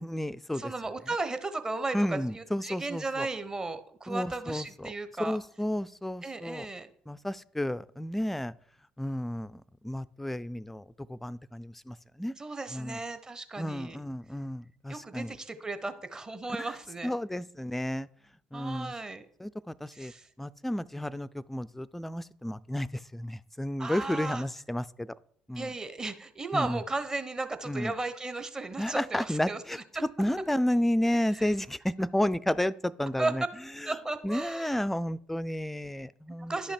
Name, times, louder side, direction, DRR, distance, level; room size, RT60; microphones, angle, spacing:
voice 1, 0.0-0.7 1.9-3.3 4.1-4.9 5.2-6.7 7.1-8.5 9.0-12.3 12.7-13.0 13.6-15.4 16.6-16.8 17.0-18.1 18.5-18.9 19.4-20.1 20.4-25.2 25.5-25.7 26.5-26.8 27.7-27.9 28.8-33.4 33.8-34.0 34.2-36.6, left 1 dB, 5° left, 17 dB, 0.4 m, -32 dB
voice 2, 0.6-5.4 6.2-6.9 12.4-14.0 14.9-17.2 18.5-19.2 20.0-20.3 23.8-24.4 25.6-29.6 29.9-30.0 33.2-33.3 33.9-34.7 36.4-36.7, right 3 dB, 20° right, 11 dB, 0.9 m, -35 dB
11.5 x 5.7 x 4.4 m, 0.62 s
hypercardioid pair, 55°, 3 cm